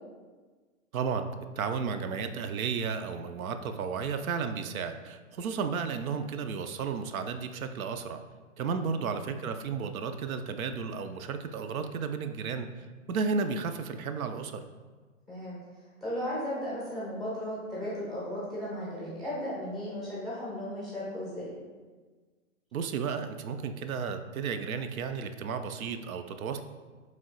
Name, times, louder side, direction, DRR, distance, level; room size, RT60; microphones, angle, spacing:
voice 1, 0.9-1.3 1.6-8.2 8.6-12.7 13.1-14.6 22.7-26.6, right 5 dB, 85° right, 8 dB, 0.5 m, -33 dB
voice 2, 15.3-15.6 16.0-21.5, equal, ahead, -8 dB, 0.5 m, -35 dB
3.6 x 3.2 x 3.7 m, 1.4 s
hypercardioid pair, 145°, 41 cm